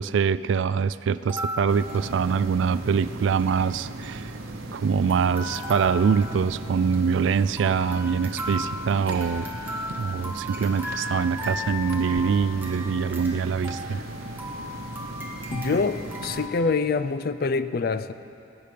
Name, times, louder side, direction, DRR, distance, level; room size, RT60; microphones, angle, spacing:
voice 1, 0.0-4.3 4.7-9.5 10.0-14.0, right 6 dB, 65° right, 16 dB, 0.3 m, -24 dB
sound 1, 1.1-2.8 3.0-3.1 3.3-3.6 4.0-4.8 5.1-16.5, left 1 dB, 10° right, 1.2 m, -36 dB
sound 2, 1.7-16.5, right 2 dB, 90° right, 1.1 m, -38 dB
voice 2, 15.5-18.1, left 4 dB, 45° left, 13 dB, 0.4 m, -25 dB
20.5 x 9.1 x 5.1 m, 2.7 s
head